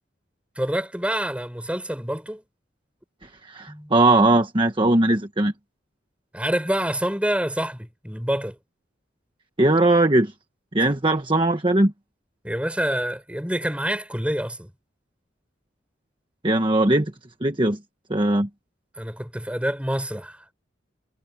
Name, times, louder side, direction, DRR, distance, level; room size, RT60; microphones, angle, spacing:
voice 1, 0.6-2.4 3.7-3.9 6.3-8.6 12.4-14.7 18.9-20.4, right 1 dB, 5° right, 5.8 m, -27 dB
voice 2, 3.5-5.5 9.6-10.3 10.7-11.9 16.4-17.1 17.4-17.8 18.1-18.5, right 2 dB, 25° right, 1.3 m, -19 dB
head